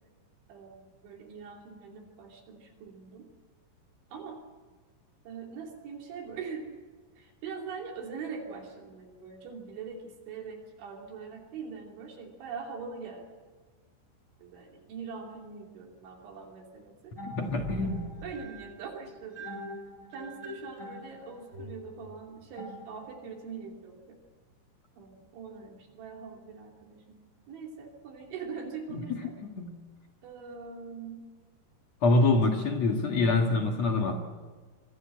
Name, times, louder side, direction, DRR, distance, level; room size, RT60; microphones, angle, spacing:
voice 1, 0.5-3.3 4.1-4.4 5.3-6.7 7.2-13.3 14.4-17.2 17.8-19.5 20.1-24.2 25.0-27.2 27.5-29.3 30.2-31.3, right 5 dB, 70° right, 1 dB, 5.2 m, -42 dB
voice 2, 17.2-18.1 28.9-29.8 32.0-34.2, left 2 dB, 50° left, 3 dB, 2.1 m, -26 dB
sound 1, 17.2-23.3, equal, 15° right, 7.6 m, -43 dB
25.5 x 21.5 x 7.7 m, 1.4 s
omnidirectional pair, 5.6 m